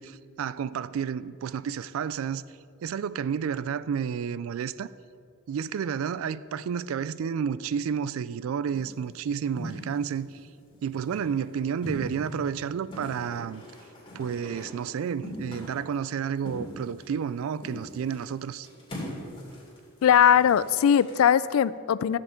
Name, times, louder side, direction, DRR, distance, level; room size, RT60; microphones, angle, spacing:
voice 1, 0.0-2.4 2.8-4.9 5.5-10.3 10.8-13.6 14.1-18.7, right 7 dB, 80° right, 0.3 m, -31 dB
sound 1, 8.7-9.1 9.6-10.2 10.7-11.4 11.8-12.5 12.9-14.9 15.2-15.9 16.4-17.3 17.6-18.2 18.6-21.2, equal, 25° left, 2.8 m, -40 dB
voice 2, 20.0-22.2, left 8 dB, 90° left, 0.3 m, -20 dB
13.5 x 7.8 x 4.4 m
head